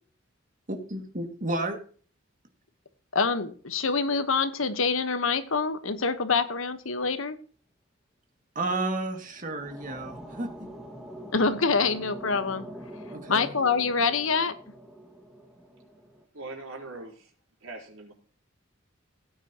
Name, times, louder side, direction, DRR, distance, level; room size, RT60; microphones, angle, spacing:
voice 1, 0.7-1.8 8.6-10.7 13.1-13.5, right 2 dB, 40° right, 4 dB, 2.2 m, -32 dB
voice 2, 3.1-7.4 11.3-12.6 13.3-14.5, left 4 dB, 80° left, 11 dB, 1.2 m, -26 dB
sound 1, 9.2-16.2, equal, 5° right, 1.9 m, -44 dB
voice 3, 16.3-17.3 17.6-18.1, right 2 dB, 80° right, 1 dB, 4.1 m, -41 dB
17.0 x 9.3 x 3.0 m, 0.43 s
head